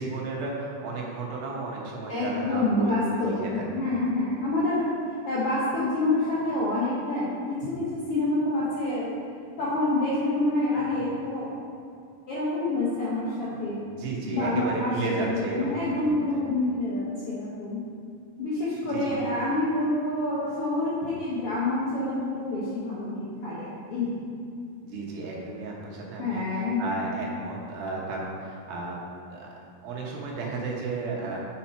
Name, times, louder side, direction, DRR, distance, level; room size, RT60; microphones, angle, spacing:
voice 1, 0.0-2.9 3.2-3.6 10.7-11.0 13.8-16.4 18.8-19.2 24.8-29.0 29.3-29.5 29.8-31.4, right 3 dB, 80° right, -2 dB, 2.8 m, -33 dB
voice 2, 2.1-4.8 5.2-9.1 9.6-11.6 12.3-13.9 14.3-17.8 18.4-24.2 26.2-26.9, left 2 dB, 70° left, -8 dB, 1.4 m, -27 dB
7.7 x 5.8 x 4.3 m, 2.4 s
omnidirectional pair, 4.2 m